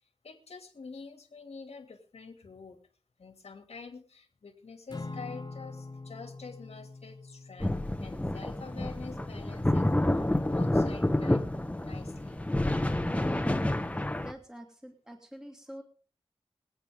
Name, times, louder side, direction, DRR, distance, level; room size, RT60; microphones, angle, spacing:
voice 1, 0.2-2.8 3.2-11.4 11.8-12.4, left 4 dB, 80° left, 5 dB, 2.6 m, -47 dB
Acoustic guitar / Strum, 4.9-9.4, left 3 dB, 40° left, 1.9 m, -45 dB
sound 1, 7.6-14.3, left 1 dB, 10° left, 1.3 m, -29 dB
voice 2, 14.2-15.8, equal, 5° right, 3 dB, 2.3 m, -46 dB
24.5 x 8.3 x 3.6 m, 0.43 s
wide cardioid pair, 70°, 11 cm